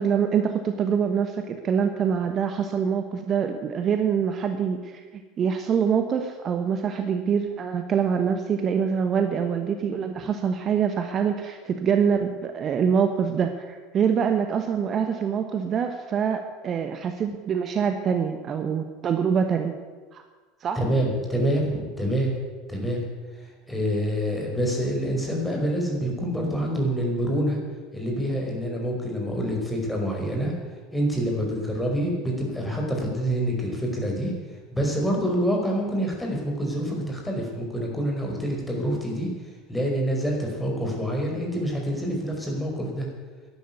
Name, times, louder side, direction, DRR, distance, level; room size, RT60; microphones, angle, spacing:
voice 1, 0.0-5.0 5.4-19.7 20.1-20.2 20.6-20.8, right 7 dB, 35° right, 7 dB, 1.2 m, -25 dB
voice 2, 20.8-22.3 22.7-23.0 23.4-27.6 27.9-30.5 30.9-34.3 34.7-39.3 39.7-43.1, equal, 5° left, 0 dB, 5.2 m, -26 dB
11.5 x 11.0 x 9.4 m, 1.4 s
figure-of-eight pair, 70°, 0 cm